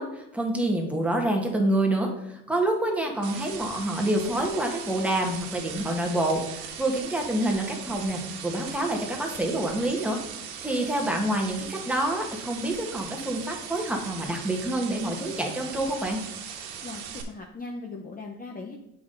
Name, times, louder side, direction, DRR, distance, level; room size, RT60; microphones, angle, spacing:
voice 1, 0.0-10.2 10.6-16.2, right 1 dB, 5° right, 1 dB, 1.6 m, -27 dB
sound 1, 3.2-17.2, right 7 dB, 80° right, 1.3 m, -39 dB
voice 2, 16.8-18.8, left 3 dB, 20° left, 1 dB, 0.8 m, -39 dB
7.6 x 5.7 x 3.9 m, 0.84 s
cardioid pair, 115°, 38 cm